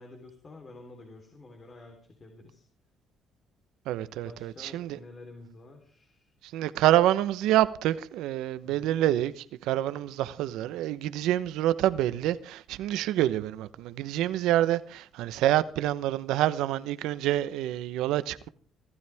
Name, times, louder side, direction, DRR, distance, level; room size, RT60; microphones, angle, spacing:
voice 1, 0.0-2.7 4.2-6.3 8.6-9.0, left 2 dB, 35° left, 3.7 m, -49 dB
voice 2, 3.9-5.0 6.4-18.5, right 13 dB, 85° right, 0.9 m, -27 dB
25.0 x 12.5 x 3.5 m
cardioid pair, 105°, 0 cm